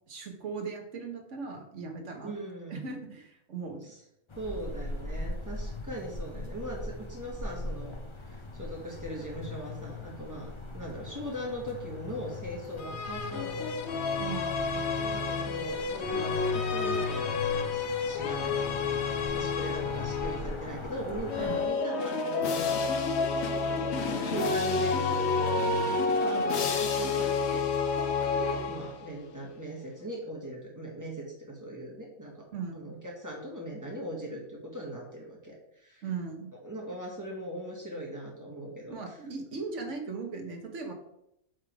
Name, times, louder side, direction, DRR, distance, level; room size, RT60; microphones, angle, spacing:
voice 1, 0.1-2.3 2.7-3.9 14.2-14.8 21.4-21.6 32.5-32.9 36.0-36.5 38.9-40.9, right 4 dB, 55° right, 4 dB, 1.4 m, -38 dB
voice 2, 2.2-3.0 4.3-8.0 8.2-13.8 15.0-22.8 23.6-27.7 27.9-32.4 32.7-36.0 36.6-39.2, right 1 dB, 10° right, -2 dB, 1.7 m, -40 dB
sound 1, 4.3-21.7, left 2 dB, 25° left, 0.7 m, -41 dB
sound 2, 12.8-20.6 21.2-29.2, left 4 dB, 55° left, 0.9 m, -29 dB
7.9 x 3.7 x 4.8 m, 0.79 s
omnidirectional pair, 1.5 m